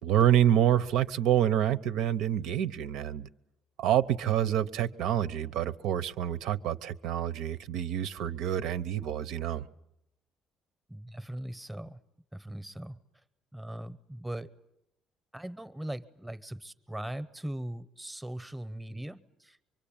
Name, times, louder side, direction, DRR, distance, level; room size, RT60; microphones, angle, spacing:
voice 1, 0.0-3.3 3.8-9.7, right 11 dB, 80° right, 0.9 m, -27 dB
voice 2, 10.9-12.0 12.3-13.0 13.5-14.5 15.3-19.6, right 1 dB, 5° right, 0.9 m, -40 dB
24.5 x 24.0 x 8.8 m
cardioid pair, 150°, 0 cm